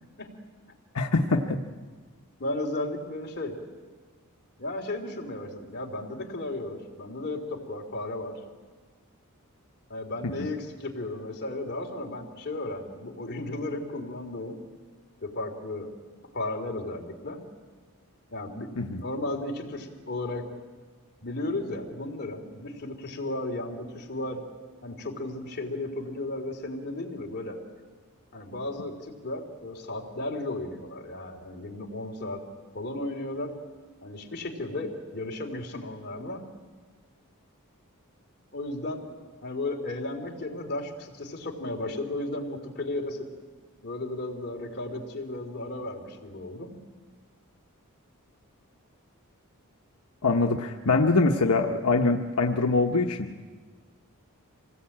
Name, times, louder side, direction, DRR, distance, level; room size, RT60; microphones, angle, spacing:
voice 1, 0.9-1.6 10.2-10.3 18.8-19.0 50.2-53.4, left 3 dB, 85° left, 3 dB, 1.1 m, -24 dB
voice 2, 2.4-3.6 4.6-8.4 9.9-14.6 15.2-15.9 16.3-17.4 18.3-18.7 18.9-20.6 21.2-24.4 24.8-27.6 28.3-32.4 32.7-33.6 34.0-36.4 38.5-39.0 39.4-43.3 43.8-46.7, left 2 dB, 45° left, 1 dB, 3.5 m, -34 dB
26.0 x 18.5 x 8.8 m, 1.5 s
head